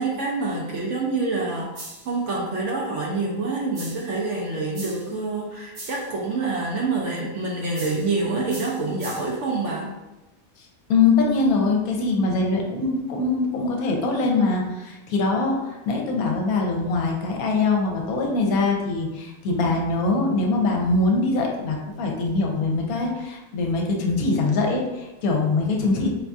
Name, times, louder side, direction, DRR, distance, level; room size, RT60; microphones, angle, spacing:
voice 1, 0.0-9.9, right 3 dB, 65° right, -2 dB, 0.8 m, -27 dB
sound 1, 1.7-2.2 3.7-4.2 4.7-5.2 5.7-6.2 7.7-8.2 8.5-9.4, right 2 dB, 45° right, 1.1 m, -40 dB
voice 2, 10.9-26.1, left 3 dB, 75° left, 1 dB, 1.1 m, -23 dB
4.5 x 2.6 x 2.3 m, 1.0 s
omnidirectional pair, 1.6 m